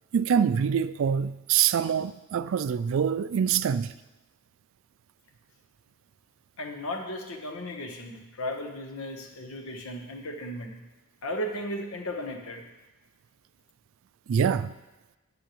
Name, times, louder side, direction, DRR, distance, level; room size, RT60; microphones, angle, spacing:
voice 1, 0.1-3.9 14.3-14.7, right 7 dB, 60° right, 0.3 m, -25 dB
voice 2, 6.6-10.8 11.2-12.6, left 1 dB, 65° left, 1.1 m, -35 dB
11.5 x 7.5 x 3.1 m
head